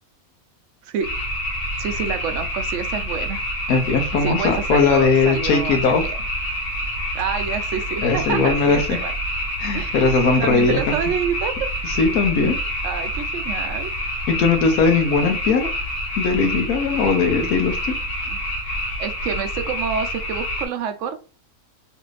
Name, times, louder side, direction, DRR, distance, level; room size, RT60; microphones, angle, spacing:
sound 1, 1.0-20.7, equal, 90° left, 1.5 m, -27 dB
voice 1, 1.8-3.4 4.2-6.1 7.1-9.1 9.7-11.7 12.8-13.9 17.0-17.1 18.3-18.4 19.0-21.2, right 7 dB, 65° right, 8 dB, 0.8 m, -28 dB
voice 2, 3.7-6.0 8.0-9.0 9.6-10.8 11.8-12.6 14.3-15.7 16.2-17.9, left 4 dB, 75° left, 4 dB, 1.1 m, -19 dB
3.2 x 2.5 x 3.1 m, 0.36 s
omnidirectional pair, 1.6 m